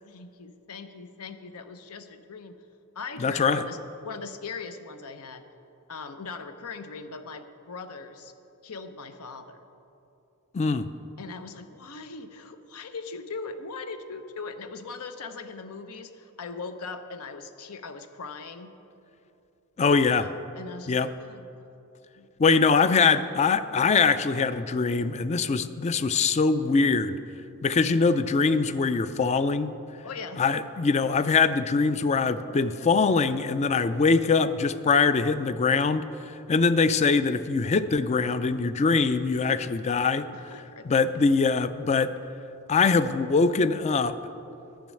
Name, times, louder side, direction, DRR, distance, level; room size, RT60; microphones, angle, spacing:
voice 1, 0.0-2.6 2.9-5.4 5.9-8.3 8.6-9.6 11.2-18.7 20.0-21.5 22.2-22.3 30.0-30.4 40.3-41.0, left 4 dB, 80° left, 9 dB, 0.7 m, -40 dB
voice 2, 3.2-3.6 10.5-10.9 19.8-20.3 20.9-21.1 22.4-27.2 27.6-29.7 30.4-40.3 40.8-42.1 42.7-44.2, left 4 dB, 30° left, 13 dB, 0.3 m, -23 dB
10.5 x 6.2 x 9.0 m, 2.8 s
head